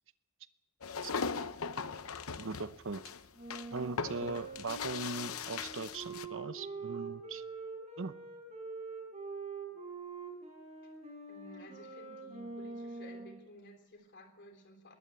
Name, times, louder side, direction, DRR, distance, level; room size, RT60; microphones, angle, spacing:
sound 1, 0.8-6.3, left 5 dB, 75° left, 0.8 m, -39 dB
voice 1, 2.4-3.0 3.7-7.4 8.0-8.1, right 3 dB, 65° right, 13 dB, 0.8 m, -39 dB
Wind instrument woodwind instrument, 3.3-13.4, right 4 dB, 30° right, 6.3 m, -45 dB
voice 2, 11.3-14.9, equal, 55° left, 4 dB, 3.4 m, -54 dB
21.0 x 17.0 x 8.2 m, 0.92 s
head